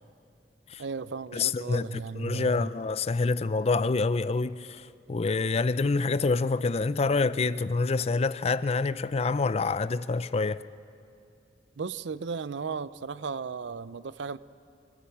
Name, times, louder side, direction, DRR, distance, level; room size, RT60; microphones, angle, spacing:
voice 1, 0.8-2.7 11.8-14.4, right 5 dB, 80° right, 0.5 m, -35 dB
voice 2, 1.3-10.6, left 3 dB, 35° left, 0.4 m, -27 dB
24.5 x 14.0 x 8.6 m
head